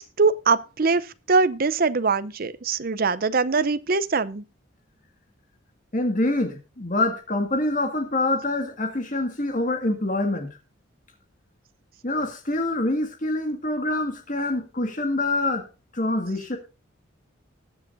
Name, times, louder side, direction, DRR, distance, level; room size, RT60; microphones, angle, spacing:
voice 1, 0.0-4.4, right 4 dB, 45° right, 0.6 m, -22 dB
voice 2, 5.9-10.5 12.0-15.7 15.9-16.6, left 2 dB, 40° left, 1.9 m, -25 dB
20.5 x 6.9 x 2.6 m
head